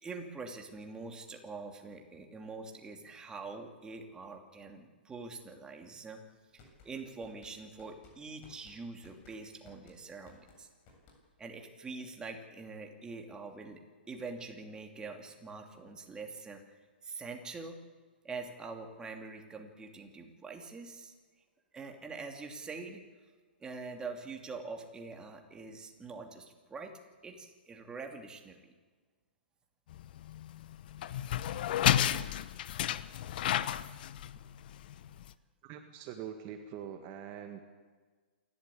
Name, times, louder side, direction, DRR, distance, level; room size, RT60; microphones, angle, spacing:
voice 1, 0.0-6.2 6.5-10.7 11.4-13.8 14.1-16.6 17.0-17.8 18.2-21.1 21.7-23.0 23.6-28.7, right 4 dB, 15° right, 3 dB, 2.7 m, -44 dB
sound 1, 6.3-11.5, left 3 dB, 35° left, 7.9 m, -60 dB
sound 2, 29.9-35.3, left 11 dB, 55° left, 0.9 m, -32 dB
voice 2, 35.6-37.6, right 9 dB, 35° right, 5 dB, 1.8 m, -44 dB
28.0 x 12.5 x 8.6 m, 1.5 s
hypercardioid pair, 120°, 6 cm